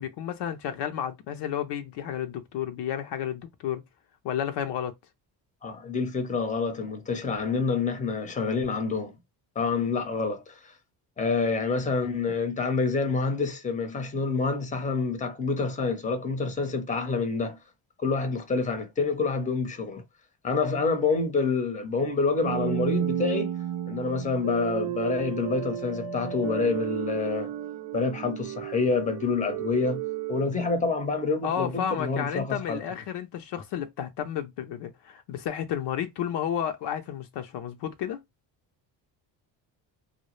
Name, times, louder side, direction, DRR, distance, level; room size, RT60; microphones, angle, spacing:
voice 1, 0.0-3.8 4.2-4.9 31.4-38.2, left 9 dB, 65° left, 0.5 m, -32 dB
voice 2, 5.6-9.1 9.6-10.7 11.2-17.6 18.0-20.0 20.4-23.5 23.9-27.5 27.9-30.0 30.3-32.8, left 4 dB, 15° left, 0.6 m, -27 dB
sound 1, 22.4-31.4, right 11 dB, 70° right, 0.6 m, -33 dB
2.0 x 2.0 x 3.0 m
cardioid pair, 80°, 44 cm